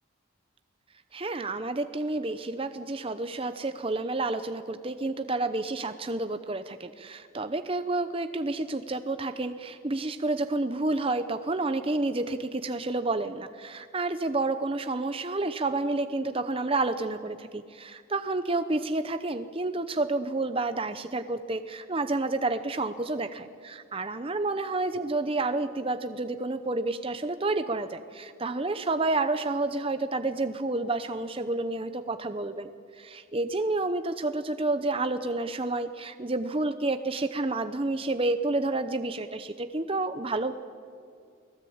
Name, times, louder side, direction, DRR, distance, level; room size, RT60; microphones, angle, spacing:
voice 1, 1.1-40.5, right 2 dB, 25° right, 9 dB, 0.7 m, -30 dB
29.0 x 19.0 x 8.7 m, 2.3 s
head